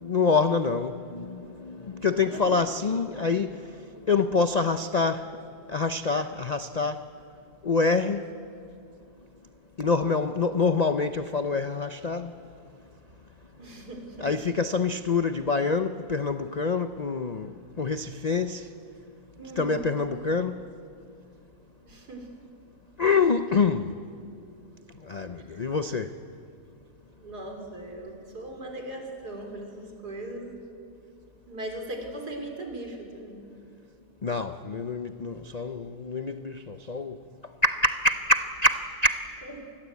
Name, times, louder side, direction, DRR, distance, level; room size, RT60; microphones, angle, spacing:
voice 1, 0.0-3.6 4.1-5.3 5.7-7.0 7.6-8.2 9.8-12.3 14.2-18.7 19.6-20.6 23.0-23.9 25.1-26.1 34.2-37.2 37.6-39.3, left 4 dB, 55° left, 0.4 m, -26 dB
voice 2, 2.1-2.5 13.6-14.3 19.4-19.8 21.8-22.3 25.5-25.6 27.2-30.5 31.5-33.4 39.5-39.6, right 1 dB, 75° right, 4.1 m, -39 dB
27.5 x 21.0 x 8.3 m
omnidirectional pair, 1.7 m